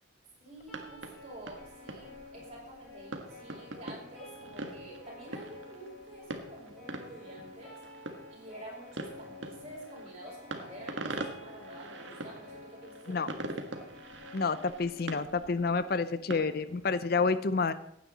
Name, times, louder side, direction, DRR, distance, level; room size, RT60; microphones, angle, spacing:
voice 1, 0.4-7.7 8.3-13.2, right 2 dB, 35° right, -4 dB, 5.5 m, -49 dB
sound 1, 0.6-17.0, right 2 dB, 80° right, 1.5 m, -44 dB
sound 2, 0.7-16.7, left 3 dB, ahead, 5.7 m, -51 dB
voice 2, 14.3-17.7, left 4 dB, 55° left, 14 dB, 0.5 m, -29 dB
15.5 x 9.3 x 4.1 m, 0.74 s
head